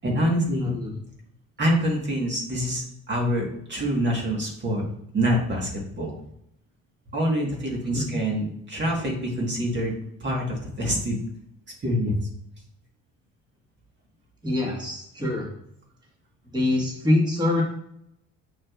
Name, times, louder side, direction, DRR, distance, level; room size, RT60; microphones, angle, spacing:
voice 1, 0.0-0.7 1.6-4.9 5.1-6.1 7.1-9.9 10.2-11.2 11.8-12.2, equal, 35° right, -2 dB, 1.7 m, -26 dB
voice 2, 0.6-0.9 8.0-8.1 14.4-15.5 16.5-17.6, left 1 dB, 15° right, -2 dB, 1.6 m, -24 dB
6.2 x 6.1 x 2.5 m, 0.75 s
cardioid pair, 100°, 31 cm